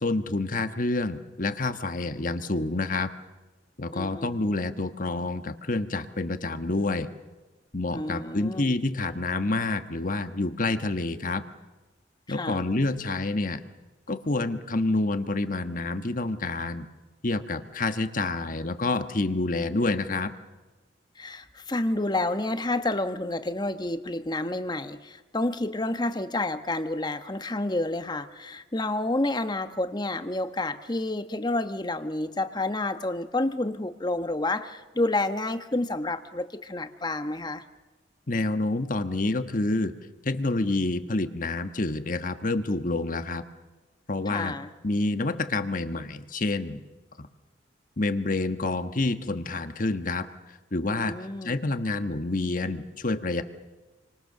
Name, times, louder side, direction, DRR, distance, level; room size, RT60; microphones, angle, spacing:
voice 1, 0.0-3.1 3.8-7.1 7.7-11.4 12.3-13.6 14.1-16.9 17.2-20.3 38.3-39.9 40.2-43.4 44.1-44.5 44.8-46.8 47.2-47.3 48.0-50.3 50.7-51.2 51.4-53.4, left 2 dB, 45° left, 9 dB, 1.4 m, -28 dB
voice 2, 3.9-4.7 7.9-8.7 12.3-12.6 21.2-37.6 44.3-44.7 51.0-51.6, left 2 dB, 25° left, 9 dB, 1.1 m, -29 dB
29.5 x 25.0 x 6.8 m, 1.2 s
head